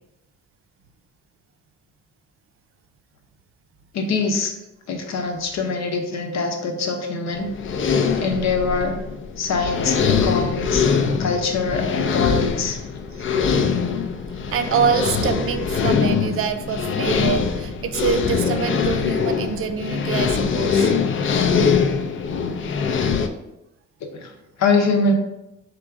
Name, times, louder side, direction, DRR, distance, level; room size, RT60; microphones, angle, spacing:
voice 1, 3.9-4.5 4.9-7.5 8.2-8.9 9.4-10.9 11.2-12.8 24.1-24.3 24.6-25.1, left 4 dB, 60° left, 4 dB, 0.8 m, -23 dB
sound 1, 7.3-23.3, left 6 dB, 40° left, 0.5 m, -22 dB
voice 2, 14.5-20.9, right 6 dB, 45° right, 8 dB, 0.5 m, -25 dB
3.7 x 2.6 x 4.6 m, 0.91 s
cardioid pair, 90°, 30 cm